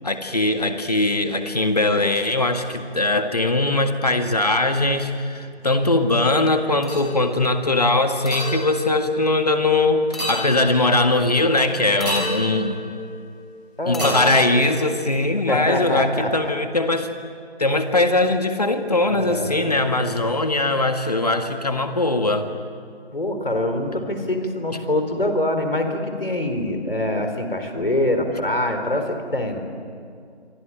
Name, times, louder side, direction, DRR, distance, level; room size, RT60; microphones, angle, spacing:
voice 1, 0.0-12.8 13.9-17.1 17.6-22.5, left 2 dB, 35° left, 7 dB, 1.8 m, -20 dB
sound 1, 6.8-7.4 8.2-9.7 10.1-11.1 12.0-13.5 13.9-15.3, equal, ahead, 4.0 m, -31 dB
voice 2, 13.8-14.3 15.5-16.5 19.1-19.8 23.1-29.6, left 1 dB, 60° left, 6 dB, 4.4 m, -24 dB
26.5 x 24.0 x 8.9 m, 2.4 s
figure-of-eight pair, 170°, 33 cm